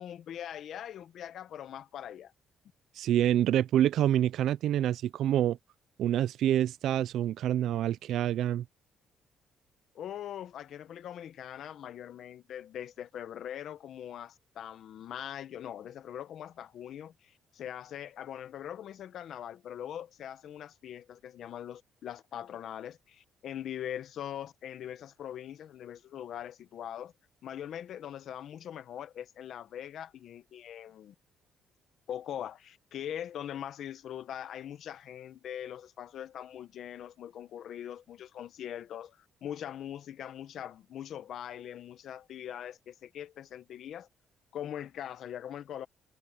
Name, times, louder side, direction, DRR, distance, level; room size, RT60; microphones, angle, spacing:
voice 1, 0.0-2.3 9.9-27.1 27.4-31.1 32.1-44.1 44.5-45.9, left 10 dB, 65° left, 1.3 m, -42 dB
voice 2, 3.0-5.6 6.0-8.6, right 11 dB, 75° right, 0.4 m, -27 dB
cardioid pair, 120°, 0 cm